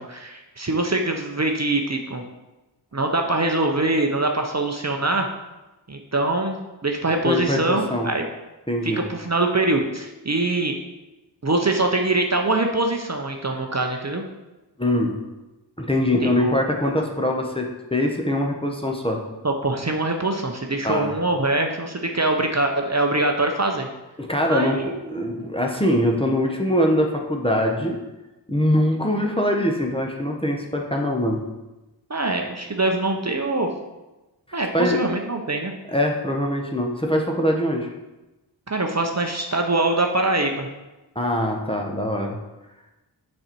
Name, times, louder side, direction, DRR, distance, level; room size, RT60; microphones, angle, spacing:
voice 1, 0.0-2.2 2.9-5.3 5.9-8.2 8.8-10.8 11.4-14.2 16.2-16.6 19.4-23.9 24.5-25.1 32.1-33.7 34.5-35.7 38.7-40.7, right 2 dB, 40° right, 3 dB, 0.7 m, -23 dB
voice 2, 7.2-8.1 8.7-9.0 14.8-15.2 15.8-19.2 20.8-21.1 24.2-28.0 28.5-31.4 34.7-35.0 35.9-37.9 41.1-42.4, left 1 dB, 15° left, 1 dB, 0.9 m, -23 dB
6.4 x 4.3 x 4.5 m, 1.1 s
wide cardioid pair, 50°, 43 cm